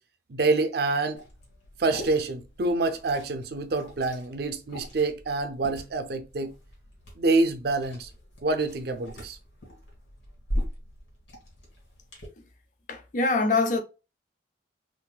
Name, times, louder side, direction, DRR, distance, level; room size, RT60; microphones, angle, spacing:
voice 1, 0.3-1.2 1.8-6.5 7.2-8.1 8.4-9.4, right 3 dB, 55° right, 0.5 m, -26 dB
Liquid, 1.2-12.3, equal, 85° left, 1.7 m, -40 dB
voice 2, 12.9-13.8, left 3 dB, 40° left, 0.5 m, -24 dB
3.7 x 2.6 x 2.3 m
head